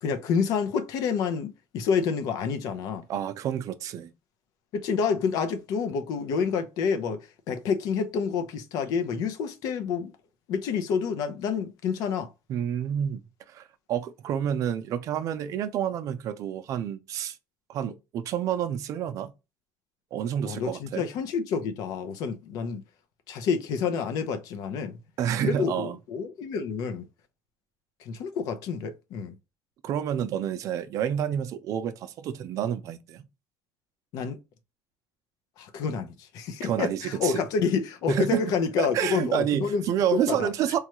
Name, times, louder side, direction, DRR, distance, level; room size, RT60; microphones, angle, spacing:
voice 1, 0.0-3.0 4.7-7.2 7.5-10.1 10.5-12.3 20.4-22.8 23.3-24.9 25.4-27.0 28.0-29.4 34.1-34.4 35.6-39.8 40.3-40.5, left 6 dB, 80° left, 0.6 m, -28 dB
voice 2, 3.1-4.1 12.5-13.2 13.5-17.4 17.7-19.3 20.1-21.1 25.2-26.0 29.8-33.2 36.6-37.4 38.1-40.8, right 9 dB, 60° right, 0.4 m, -29 dB
3.2 x 2.3 x 2.9 m
cardioid pair, 120°, 6 cm